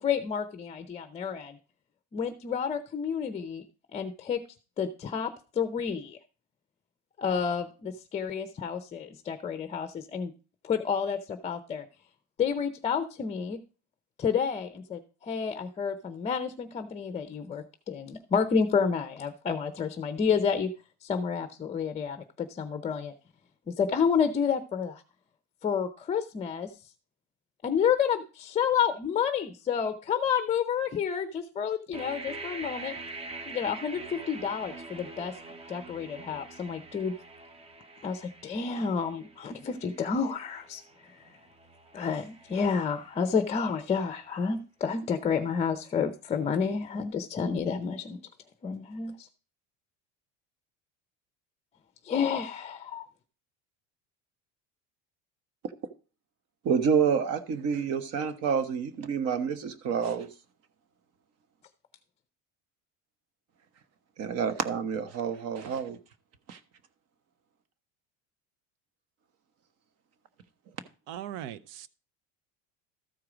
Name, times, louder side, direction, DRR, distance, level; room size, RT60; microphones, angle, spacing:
voice 1, 0.0-1.6 2.1-3.6 3.9-4.4 4.8-6.2 7.2-10.3 10.6-11.8 12.4-13.6 14.2-20.7 21.0-23.1 23.7-25.0 25.6-26.7 27.6-33.0 33.5-35.4 35.7-37.1 38.0-40.8 41.9-48.2 48.6-49.3 52.0-53.1, left 6 dB, 20° left, 0.6 m, -30 dB
sound 1, 31.9-43.7, right 3 dB, 15° right, 0.7 m, -45 dB
voice 2, 56.6-60.3 64.2-66.0 66.5-66.6, right 6 dB, 45° right, 1.1 m, -28 dB
voice 3, 71.1-71.9, right 11 dB, 75° right, 0.7 m, -39 dB
13.5 x 4.7 x 5.0 m
cardioid pair, 145°, 34 cm